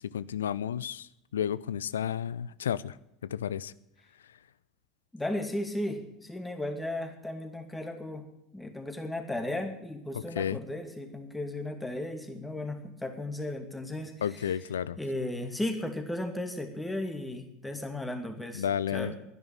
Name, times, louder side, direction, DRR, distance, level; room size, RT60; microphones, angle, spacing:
voice 1, 0.1-1.1 1.3-3.0 3.3-3.7 10.4-10.6 14.2-15.0 18.5-19.1, left 9 dB, 70° left, 0.4 m, -31 dB
voice 2, 5.1-8.2 8.5-14.5 15.0-18.6 18.9-19.2, left 1 dB, 10° left, 2.3 m, -35 dB
12.0 x 10.5 x 8.4 m
figure-of-eight pair, 75°, 0 cm